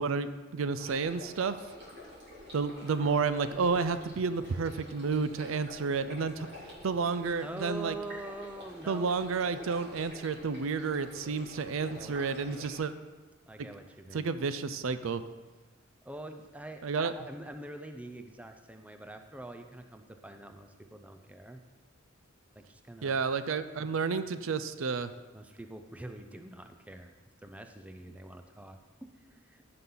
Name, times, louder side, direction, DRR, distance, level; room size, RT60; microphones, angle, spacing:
voice 1, 0.0-1.6 2.5-6.5 6.8-8.0 8.9-12.9 13.6-13.7 14.1-15.2 16.8-17.1 23.0-25.1, right 5 dB, 70° right, 12 dB, 0.5 m, -31 dB
sound 1, 0.7-12.8, left 1 dB, 55° right, 3.1 m, -49 dB
voice 2, 7.4-9.1 11.8-12.5 13.4-14.3 16.0-21.6 22.6-23.2 25.3-27.1 27.4-29.6, right 1 dB, 5° right, 6 dB, 0.5 m, -45 dB
15.0 x 5.7 x 3.9 m, 1.3 s
head